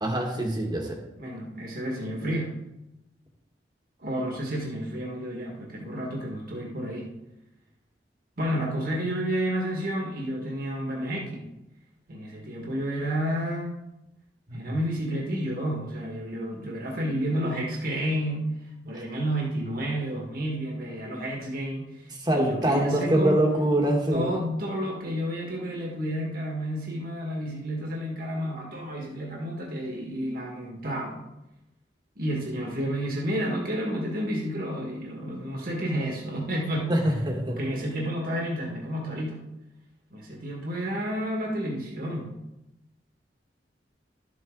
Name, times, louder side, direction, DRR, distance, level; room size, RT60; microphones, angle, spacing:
voice 1, 0.0-1.0 14.5-14.7 18.9-19.0 22.2-24.3 36.9-37.6, right 1 dB, 25° right, 2 dB, 1.7 m, -24 dB
voice 2, 1.2-2.5 4.0-7.1 8.4-11.5 12.1-13.7 14.5-23.4 24.1-31.3 32.2-36.9 37.5-39.4 40.1-42.4, equal, 55° right, -2 dB, 1.9 m, -31 dB
12.0 x 7.8 x 3.9 m, 0.93 s
head